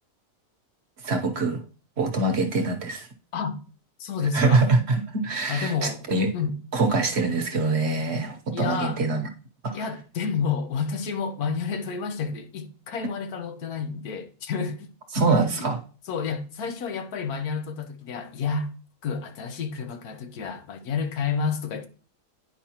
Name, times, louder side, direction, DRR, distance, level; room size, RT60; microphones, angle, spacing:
voice 1, 1.0-1.6 2.0-3.1 4.3-6.3 6.7-9.3 9.6-9.8 15.1-15.8, right 3 dB, 50° right, 1.0 m, -24 dB
voice 2, 4.0-4.7 5.5-6.0 6.3-6.6 8.5-9.0 9.7-14.9 15.6-15.7 16.1-18.7 19.0-21.9, left 5 dB, 85° left, 1.4 m, -30 dB
9.5 x 5.0 x 2.9 m
omnidirectional pair, 1.6 m